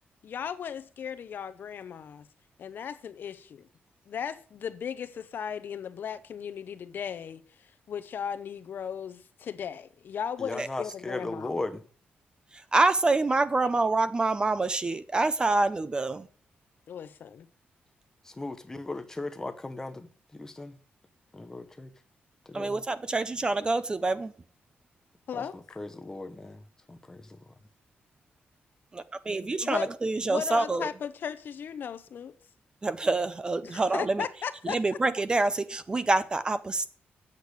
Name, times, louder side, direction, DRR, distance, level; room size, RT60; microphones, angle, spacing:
voice 1, 0.2-2.2 2.6-3.7 4.1-11.5 16.9-17.5 25.3-25.6 29.6-29.9 30.2-32.4 33.6-34.8, left 7 dB, 60° left, 0.7 m, -36 dB
voice 2, 10.4-11.8 18.2-20.8 21.3-21.9 22.5-22.8 25.3-27.5, left 2 dB, 15° left, 0.9 m, -37 dB
voice 3, 12.7-16.3 22.5-24.3 28.9-30.9 32.8-34.2 34.7-36.9, right 3 dB, 20° right, 0.6 m, -26 dB
8.2 x 6.7 x 8.1 m
wide cardioid pair, 155°, 4 cm